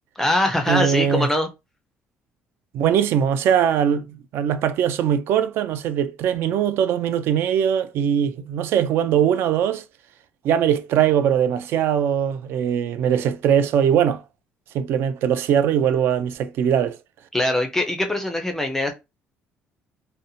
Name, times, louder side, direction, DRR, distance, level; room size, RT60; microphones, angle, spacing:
voice 1, 0.2-1.5 17.3-18.9, left 1 dB, 10° left, 0.4 m, -22 dB
voice 2, 0.7-1.3 2.7-9.8 10.4-14.2 14.7-17.0, right 9 dB, 65° right, 0.3 m, -21 dB
2.7 x 2.1 x 2.6 m
cardioid pair, 140°, 4 cm